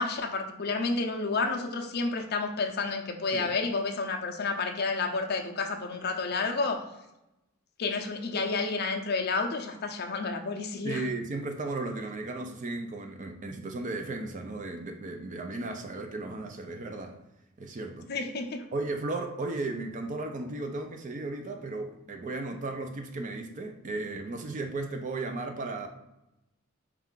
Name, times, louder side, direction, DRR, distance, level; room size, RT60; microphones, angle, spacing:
voice 1, 0.0-6.8 7.8-11.0 18.1-18.6, left 3 dB, 50° left, 3 dB, 0.5 m, -30 dB
voice 2, 10.8-17.2 17.6-18.1 18.7-25.9, right 2 dB, 35° right, 5 dB, 0.4 m, -35 dB
4.4 x 2.4 x 3.7 m, 0.93 s
head